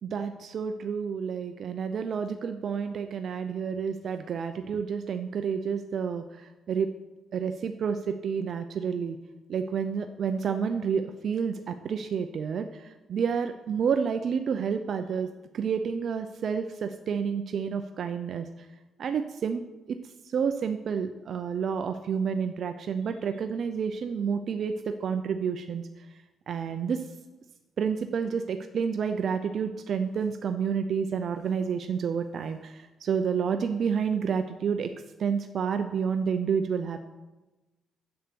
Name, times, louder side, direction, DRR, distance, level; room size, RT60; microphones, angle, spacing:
voice 1, 0.0-6.9 7.3-9.2 9.5-15.3 15.5-18.5 19.0-19.6 19.9-20.0 20.2-26.1 26.5-27.1 27.8-34.9 35.2-37.1, right 6 dB, 60° right, 8 dB, 0.5 m, -29 dB
8.0 x 7.8 x 6.9 m, 1.1 s
cardioid pair, 90°, 0 cm